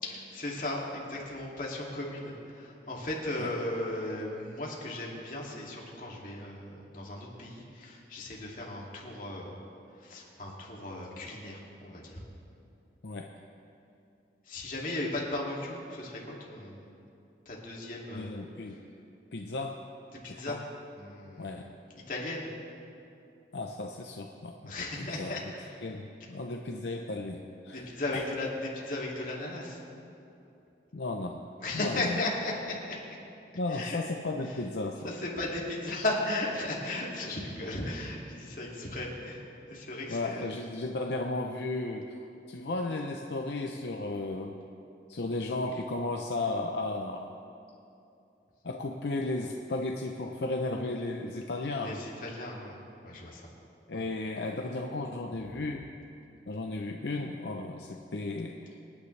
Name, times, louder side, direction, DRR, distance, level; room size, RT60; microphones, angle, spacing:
voice 1, 0.0-9.5 10.0-12.2 14.5-16.9 17.5-18.3 20.2-20.6 20.9-21.5 22.1-22.5 24.6-25.8 27.9-29.8 31.6-33.0 33.7-34.0 34.5-34.6 35.0-39.4 39.7-40.5 51.8-52.8 53.0-53.5 53.9-54.0, left 2 dB, 50° left, -3 dB, 2.5 m, -36 dB
voice 2, 18.1-18.8 19.3-19.8 20.2-20.6 21.4-21.6 23.5-24.7 25.0-25.4 25.8-28.3 30.9-31.4 31.7-32.2 33.5-35.1 40.1-44.6 45.1-47.4 48.6-52.0 53.9-55.8 56.5-58.6, left 2 dB, 75° left, 2 dB, 0.7 m, -34 dB
26.5 x 9.6 x 3.3 m, 2.7 s
head